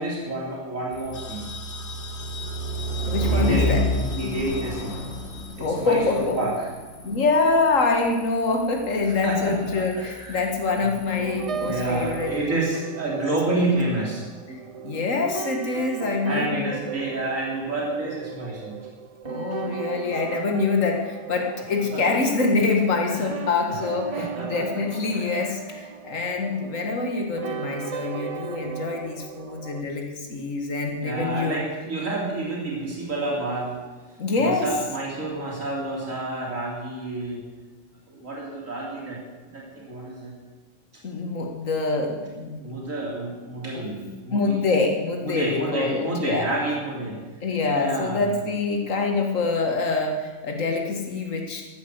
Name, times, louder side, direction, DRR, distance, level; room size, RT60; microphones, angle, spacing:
voice 1, 0.0-1.5 3.3-5.0 5.6-6.6 9.2-10.4 11.1-14.2 16.2-18.9 23.1-23.3 23.7-23.8 24.2-24.8 25.1-25.2 31.0-33.8 34.4-37.4 38.1-39.2 39.5-40.3 42.5-44.6 45.2-47.2 47.7-48.2, right 2 dB, 85° right, -3 dB, 3.8 m, -29 dB
sound 1, 0.9-12.4, right 1 dB, 45° left, 2.6 m, -31 dB
sound 2, 1.1-6.4, left 6 dB, 60° left, 1.4 m, -41 dB
voice 2, 3.1-3.9 5.6-6.4 7.0-12.3 13.5-13.7 14.5-16.7 19.2-31.6 34.2-34.7 41.0-42.6 43.7-43.8 44.3-46.5 47.4-51.6, left 3 dB, 80° left, 2 dB, 2.1 m, -25 dB
sound 3, 10.9-29.8, right 7 dB, 60° right, 0.3 m, -36 dB
14.0 x 12.0 x 7.9 m, 1.3 s
omnidirectional pair, 1.3 m